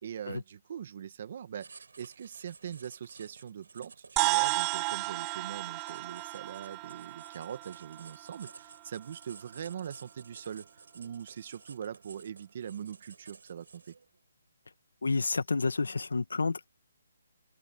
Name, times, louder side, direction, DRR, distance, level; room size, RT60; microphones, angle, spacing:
voice 1, 0.0-13.9, right 8 dB, 40° right, 1.7 m, -42 dB
Writing, 1.6-14.2, right 4 dB, 75° right, 7.0 m, -54 dB
sound 1, 4.2-8.8, right 27 dB, 15° right, 0.5 m, -33 dB
voice 2, 15.0-16.7, left 4 dB, 90° left, 1.7 m, -29 dB
hypercardioid pair, 165°, 0 cm